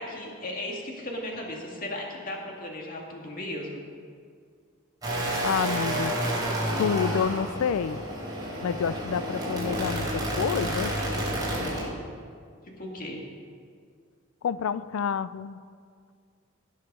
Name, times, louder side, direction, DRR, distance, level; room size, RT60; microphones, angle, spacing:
voice 1, 0.0-3.8 12.8-13.2, left 1 dB, 45° left, -1 dB, 2.1 m, -36 dB
sound 1, 5.0-11.9, right 1 dB, 20° right, 3.7 m, -30 dB
voice 2, 5.4-6.1 6.8-8.0 8.6-10.9 14.4-15.6, left 7 dB, 75° left, 15 dB, 0.3 m, -28 dB
18.0 x 6.4 x 5.4 m, 2.1 s
head